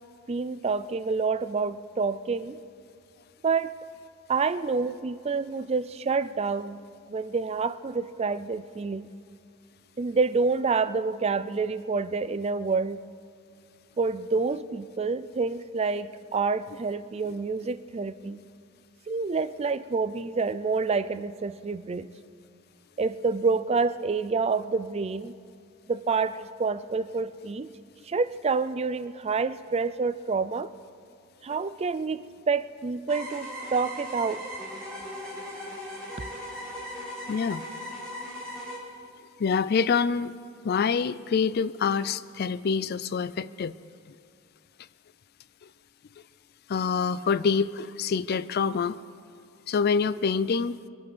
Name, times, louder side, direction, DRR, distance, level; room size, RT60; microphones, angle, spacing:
voice 1, 0.3-2.6 3.4-3.7 4.3-6.8 7.1-9.1 10.0-13.0 14.0-18.4 19.1-22.1 23.0-25.3 25.9-27.7 28.1-30.7 31.4-34.5, right 4 dB, 30° right, 14 dB, 0.4 m, -28 dB
sound 1, 33.1-38.8, equal, 5° left, 4.2 m, -38 dB
voice 2, 37.3-37.6 39.4-40.3 40.6-43.7 46.7-49.0 49.7-50.8, left 5 dB, 50° left, 17 dB, 0.4 m, -26 dB
23.0 x 8.6 x 6.2 m, 2.4 s
head